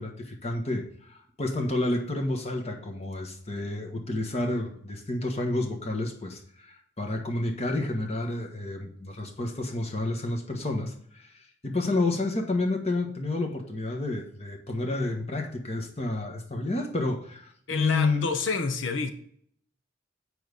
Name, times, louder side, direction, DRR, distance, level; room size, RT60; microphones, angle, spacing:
voice 1, 0.0-18.2, left 2 dB, 35° left, 2 dB, 1.4 m, -30 dB
voice 2, 17.7-19.1, left 4 dB, 80° left, 8 dB, 1.0 m, -29 dB
9.1 x 4.8 x 5.3 m, 0.63 s
head